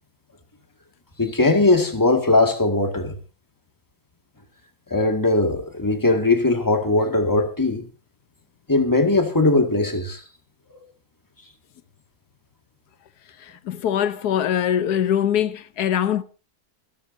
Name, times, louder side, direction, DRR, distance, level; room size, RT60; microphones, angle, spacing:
voice 1, 1.2-3.2 4.9-7.9 8.7-10.2, left 2 dB, 15° left, 2.0 m, -19 dB
voice 2, 13.4-16.2, left 9 dB, 85° left, 1.4 m, -23 dB
25.0 x 13.0 x 2.7 m
omnidirectional pair, 1.6 m